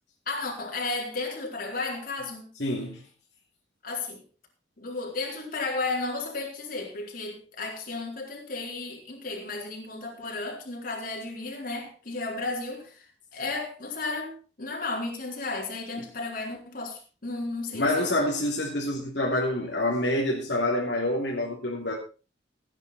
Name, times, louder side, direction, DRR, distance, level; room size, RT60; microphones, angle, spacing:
voice 1, 0.3-2.5 3.8-4.2 4.8-13.1 13.3-18.1, left 3 dB, 50° left, 4.2 m, -33 dB
voice 2, 2.6-3.0 17.7-21.9, left 1 dB, 65° left, 2.9 m, -27 dB
17.0 x 9.7 x 4.2 m
head